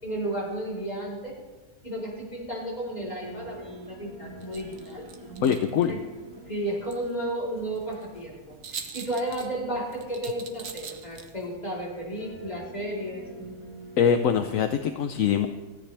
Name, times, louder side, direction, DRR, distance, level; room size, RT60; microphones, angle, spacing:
voice 1, 0.0-1.3 1.8-5.4 5.9-6.0 6.5-13.3, right 1 dB, 30° left, -4 dB, 4.8 m, -33 dB
sound 1, 2.8-14.6, right 1 dB, 20° right, 6.6 m, -47 dB
sound 2, 4.4-11.6, right 6 dB, 70° right, 1.4 m, -45 dB
voice 2, 5.4-5.9 14.0-15.5, left 8 dB, 75° left, 7 dB, 1.1 m, -23 dB
30.0 x 10.0 x 3.4 m, 1.3 s
omnidirectional pair, 1.4 m